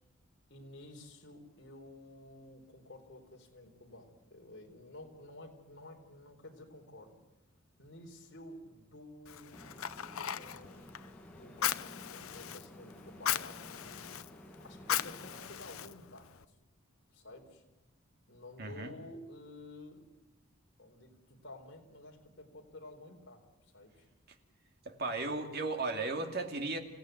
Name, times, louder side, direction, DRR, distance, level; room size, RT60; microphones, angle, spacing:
voice 1, 0.5-7.2 7.8-10.9 11.4-14.0 14.3-16.3 17.1-17.6 18.3-20.2 20.8-23.4 23.7-24.0, left 1 dB, 55° left, 1 dB, 4.2 m, -52 dB
Fire, 9.3-16.4, left 10 dB, 75° left, 0.7 m, -39 dB
sound 1, 9.5-15.5, equal, 5° left, 1.4 m, -54 dB
voice 2, 18.6-18.9 24.8-26.8, right 3 dB, 45° right, 5 dB, 2.5 m, -35 dB
28.0 x 16.5 x 9.3 m, 1.0 s
head